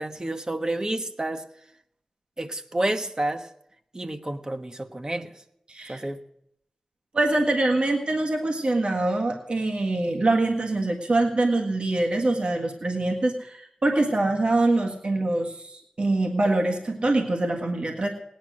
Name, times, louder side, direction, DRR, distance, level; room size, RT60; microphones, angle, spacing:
voice 1, 0.0-1.4 2.4-3.5 3.9-5.3 5.9-6.2, right 1 dB, 35° right, 8 dB, 1.2 m, -29 dB
voice 2, 5.7-6.0 7.1-18.1, right 2 dB, 60° right, 2 dB, 1.8 m, -24 dB
17.5 x 10.5 x 6.3 m, 0.75 s
cardioid pair, 45°, 2 cm